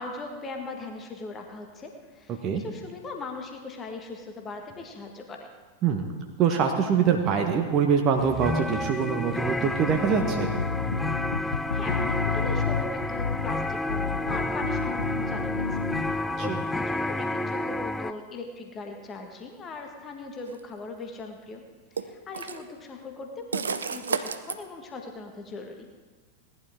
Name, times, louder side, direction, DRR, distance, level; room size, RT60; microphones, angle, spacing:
voice 1, 0.0-5.5 11.4-21.6 21.9-25.9, left 3 dB, 25° left, 3 dB, 1.7 m, -39 dB
voice 2, 6.4-10.5 16.4-16.6, right 6 dB, 35° right, 3 dB, 1.2 m, -24 dB
sound 1, 8.2-18.1, left 1 dB, 5° left, 0.4 m, -30 dB
sound 2, 10.2-16.2, left 6 dB, 75° left, 0.3 m, -31 dB
sound 3, 20.5-20.6 22.0-22.6 23.5-24.6, right 5 dB, 70° right, 0.6 m, -31 dB
18.0 x 11.5 x 3.7 m, 1.4 s
figure-of-eight pair, 90°, 0 cm